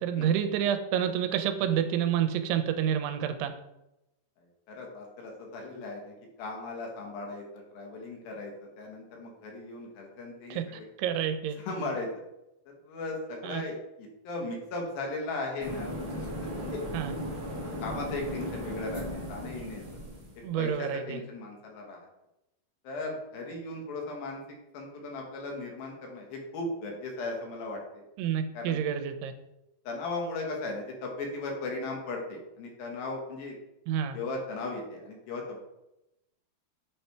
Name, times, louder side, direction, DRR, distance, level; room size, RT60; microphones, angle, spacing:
voice 1, 0.0-3.5 10.5-11.6 13.4-13.6 16.9-17.1 20.4-21.2 28.2-29.3 33.9-34.2, right 9 dB, 85° right, 8 dB, 2.6 m, -29 dB
voice 2, 4.7-10.9 11.6-12.1 12.9-16.3 16.6-16.8 17.5-19.8 20.6-22.0 22.8-24.4 24.7-28.0 28.5-28.8 29.9-33.5 34.1-35.6, left 2 dB, 70° left, 0 dB, 2.7 m, -37 dB
sound 1, 15.6-20.4, equal, 60° right, 0.9 m, -37 dB
8.3 x 3.2 x 4.5 m, 0.90 s
omnidirectional pair, 4.6 m